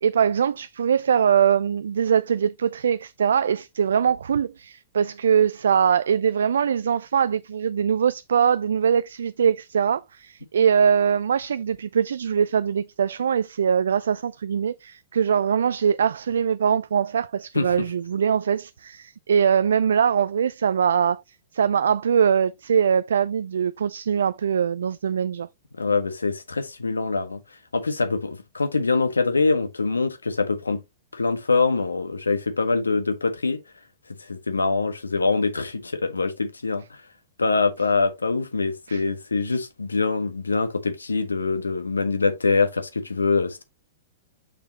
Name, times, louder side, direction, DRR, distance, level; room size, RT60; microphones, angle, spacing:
voice 1, 0.0-21.2 21.5-25.5 38.9-39.0, right 7 dB, 75° right, 0.4 m, -22 dB
voice 2, 17.5-17.8 25.8-27.4 27.7-30.8 31.1-33.6 34.3-37.0 37.4-43.6, left 4 dB, 85° left, 1.5 m, -24 dB
6.7 x 6.1 x 2.9 m
figure-of-eight pair, 105°, 0 cm